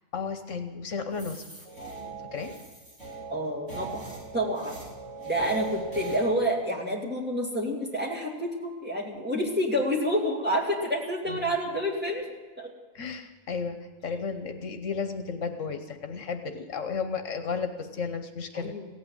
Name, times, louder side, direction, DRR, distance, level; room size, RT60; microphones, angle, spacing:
voice 1, 0.1-1.4 2.2-2.5 11.3-11.6 12.9-18.7, left 5 dB, 75° left, 7 dB, 1.4 m, -33 dB
sound 1, 1.1-6.2, right 4 dB, 70° right, 4.7 m, -40 dB
voice 2, 3.3-4.8 5.3-12.3 12.6-12.7 18.5-18.9, equal, 10° right, -3 dB, 2.5 m, -28 dB
16.5 x 8.8 x 8.8 m, 1.3 s
omnidirectional pair, 1.3 m